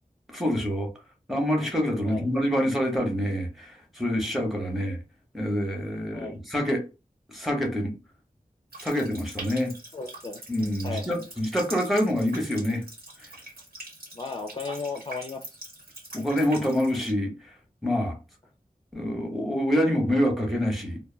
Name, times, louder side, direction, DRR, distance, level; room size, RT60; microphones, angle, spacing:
voice 1, 0.3-0.9 1.3-5.0 5.3-6.8 7.3-7.9 8.8-9.7 10.5-12.8 16.1-17.3 17.8-18.2 18.9-21.0, equal, ahead, 0.9 m, -26 dB
Water tap faucet, 8.7-17.1, right 1 dB, 90° right, 1.2 m, -44 dB
voice 2, 9.9-10.4 10.8-11.0 14.1-15.4, left 4 dB, 35° left, 0.4 m, -35 dB
2.2 x 2.1 x 3.2 m
wide cardioid pair, 60°, 15 cm